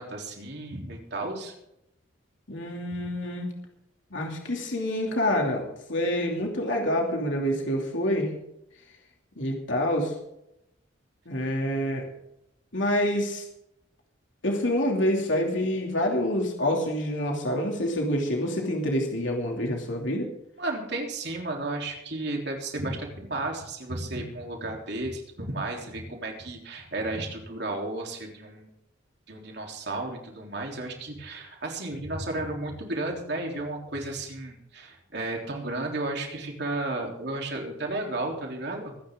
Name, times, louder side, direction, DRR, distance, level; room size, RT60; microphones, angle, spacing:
voice 1, 0.0-1.5 20.6-28.7 29.3-39.0, right 2 dB, 55° right, 1 dB, 3.6 m, -33 dB
voice 2, 2.5-3.5 4.1-8.3 9.4-10.1 11.3-12.0 12.7-13.5 14.4-20.3, left 1 dB, 75° left, 0 dB, 2.9 m, -27 dB
23.0 x 10.0 x 3.8 m, 0.82 s
head